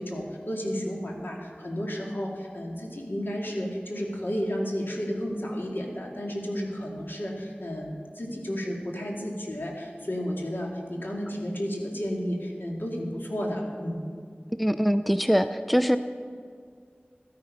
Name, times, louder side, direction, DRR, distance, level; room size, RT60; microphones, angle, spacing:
voice 1, 0.0-14.0, equal, 65° left, -1 dB, 2.1 m, -32 dB
voice 2, 14.6-16.0, equal, ahead, 10 dB, 0.4 m, -23 dB
12.5 x 9.9 x 5.3 m, 2.1 s
wide cardioid pair, 45°, 4 cm